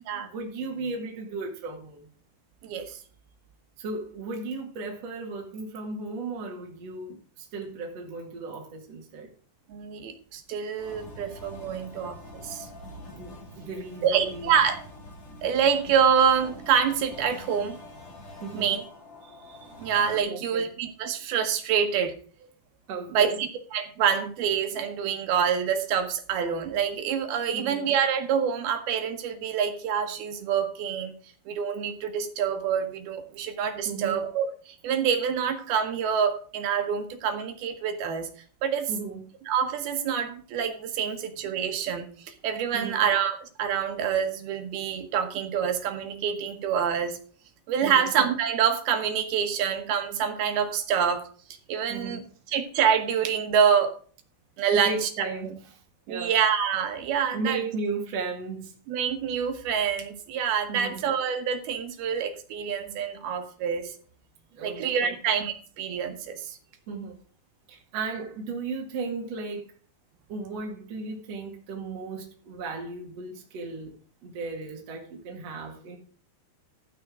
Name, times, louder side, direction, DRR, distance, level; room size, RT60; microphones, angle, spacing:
voice 1, 0.0-2.1 3.8-9.3 13.1-14.7 15.7-15.8 18.4-18.8 20.3-20.7 22.9-23.5 27.5-27.9 33.8-34.2 38.9-39.3 42.7-43.2 47.8-48.1 51.9-52.3 54.7-56.4 57.2-58.7 60.7-61.1 64.5-65.2 66.9-67.2 67.7-69.7 70.3-74.0 74.2-76.0, right 3 dB, 45° right, 2.7 m, -36 dB
voice 2, 2.6-3.0 9.7-12.2 12.4-12.7 14.0-14.8 15.4-17.8 18.5-18.8 19.8-22.1 23.1-31.1 31.5-38.3 38.6-38.9 39.5-47.2 47.7-51.3 51.7-52.2 52.5-53.9 54.6-55.1 56.1-57.6 58.9-63.9 64.6-66.6, right 7 dB, 70° right, 3.1 m, -26 dB
sound 1, 10.8-20.2, left 1 dB, 50° left, 5.0 m, -45 dB
13.0 x 9.4 x 3.7 m
omnidirectional pair, 4.7 m